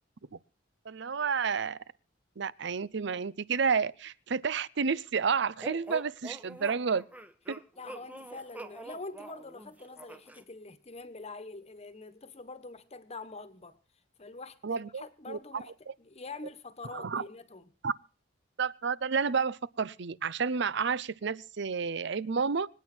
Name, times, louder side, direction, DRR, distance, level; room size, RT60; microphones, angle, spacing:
voice 1, 0.9-1.8 2.4-7.0 7.5-7.6 14.6-15.9 16.9-17.2 17.8-17.9 18.6-22.7, right 5 dB, 65° right, 0.6 m, -31 dB
sound 1, 5.6-10.4, right 2 dB, 10° right, 1.0 m, -44 dB
voice 2, 7.8-13.8 14.2-15.7 16.0-17.7, left 3 dB, 35° left, 1.3 m, -45 dB
25.5 x 9.1 x 4.4 m
head